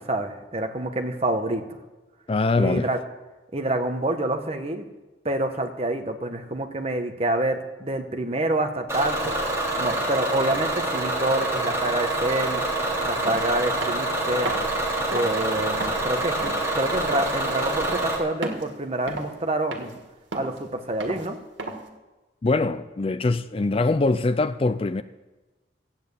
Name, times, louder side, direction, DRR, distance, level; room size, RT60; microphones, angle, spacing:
voice 1, 0.0-1.6 2.6-3.0 3.5-4.8 5.2-9.3 9.8-12.6 13.0-14.5 15.1-20.0 20.3-21.4, right 1 dB, 35° right, 1.2 m, -27 dB
voice 2, 2.3-2.9 22.4-25.0, left 3 dB, 30° left, 0.4 m, -23 dB
Bus / Engine, 8.9-18.2, right 1 dB, 15° right, 3.4 m, -26 dB
sound 1, 13.3-13.4 13.8-14.1 14.5-14.7 15.1-15.3 15.8-16.0 16.4-16.7 17.1-17.4 17.8-18.1 18.4-18.7 19.1-19.4 19.7-20.0 20.3-20.6 21.0-21.3 21.6-21.9, right 2 dB, 85° right, 1.9 m, -33 dB
13.5 x 8.9 x 8.3 m
head